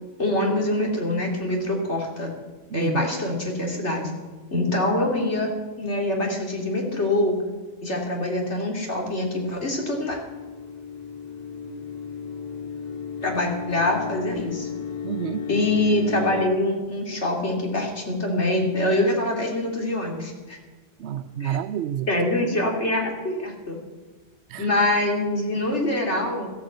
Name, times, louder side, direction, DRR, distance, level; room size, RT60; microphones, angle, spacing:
voice 1, 0.2-2.3 2.7-4.1 4.5-5.5 5.8-7.4 7.8-10.2 13.2-14.7 15.5-20.6 21.4-21.6 22.1-23.8 24.6-26.5, left 1 dB, 85° left, 3.1 m, -24 dB
voice 2, 2.7-3.1 15.0-15.5 21.0-22.1 24.5-24.7, right 10 dB, 75° right, 0.9 m, -29 dB
sound 1, 9.1-16.5, left 7 dB, 45° left, 0.7 m, -35 dB
14.5 x 10.5 x 7.8 m
omnidirectional pair, 1.1 m